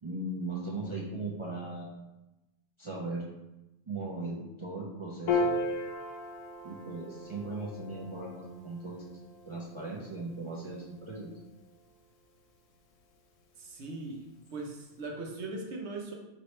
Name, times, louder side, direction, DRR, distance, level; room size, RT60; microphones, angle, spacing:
voice 1, 0.0-2.0 2.8-3.2 3.9-5.5 6.6-9.0 9.5-11.3, right 2 dB, 45° right, -5 dB, 0.4 m, -38 dB
Piano, 5.3-11.9, left 2 dB, 80° left, 0.9 m, -36 dB
voice 2, 13.6-14.2 14.5-16.1, right 2 dB, 65° right, 0 dB, 1.0 m, -39 dB
4.4 x 2.9 x 3.1 m, 0.96 s
omnidirectional pair, 1.3 m